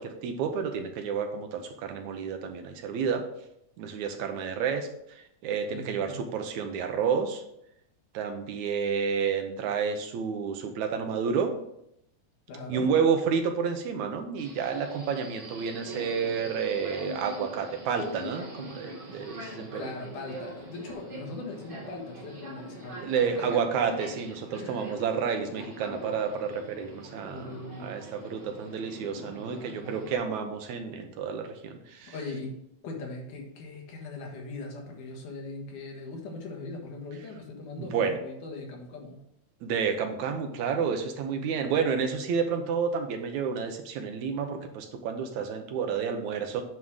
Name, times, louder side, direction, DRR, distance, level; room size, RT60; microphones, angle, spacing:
voice 1, 0.0-3.2 3.8-4.9 5.2-7.4 8.1-11.5 12.7-19.8 23.0-27.5 27.8-32.1 37.8-38.2 39.6-46.6, right 6 dB, 75° right, 5 dB, 2.2 m, -30 dB
voice 2, 5.6-6.2 12.5-12.9 19.5-23.6 24.5-24.9 27.2-28.0 29.2-30.0 32.1-32.6 32.8-39.2 41.1-41.4, left 3 dB, 85° left, 0 dB, 3.1 m, -40 dB
Subway metro underground, 14.4-30.1, right 1 dB, 25° right, 1.1 m, -43 dB
9.4 x 3.6 x 6.2 m, 0.77 s
omnidirectional pair, 3.5 m